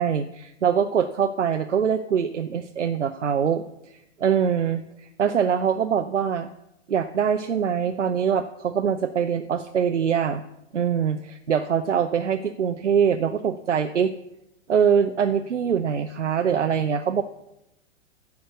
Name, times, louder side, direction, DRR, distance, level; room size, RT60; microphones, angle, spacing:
voice 1, 0.0-3.6 4.2-4.8 5.2-6.5 6.9-10.4 10.7-14.1 14.7-17.2, right 7 dB, 80° right, 7 dB, 0.6 m, -23 dB
10.5 x 6.4 x 6.5 m, 0.86 s
figure-of-eight pair, 100°, 35 cm